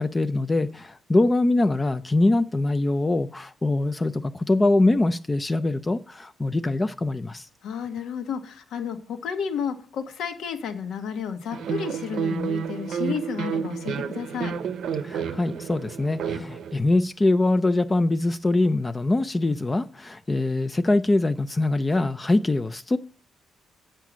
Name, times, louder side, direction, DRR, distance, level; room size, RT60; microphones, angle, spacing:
voice 1, 0.0-7.5 15.0-23.0, left 2 dB, 15° left, 0.4 m, -23 dB
voice 2, 7.6-14.5, left 7 dB, 75° left, 1.3 m, -31 dB
sound 1, 11.5-16.7, right 7 dB, 65° right, 0.7 m, -30 dB
9.0 x 5.6 x 6.1 m
cardioid pair, 150°, 0 cm